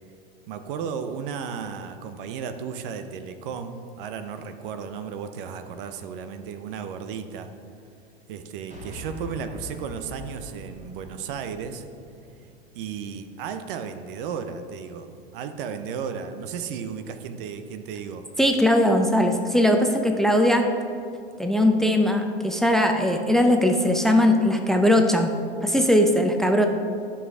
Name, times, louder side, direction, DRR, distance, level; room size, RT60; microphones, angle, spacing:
voice 1, 0.5-7.5 8.3-11.8 12.7-18.3, right 6 dB, 60° right, 8 dB, 0.8 m, -34 dB
sound 1, 8.7-13.1, left 1 dB, 25° right, 2.1 m, -43 dB
voice 2, 18.4-20.6 21.4-25.3 25.6-26.7, left 1 dB, ahead, 4 dB, 0.7 m, -20 dB
11.5 x 5.7 x 4.8 m, 2.4 s
hypercardioid pair, 90°, 30 cm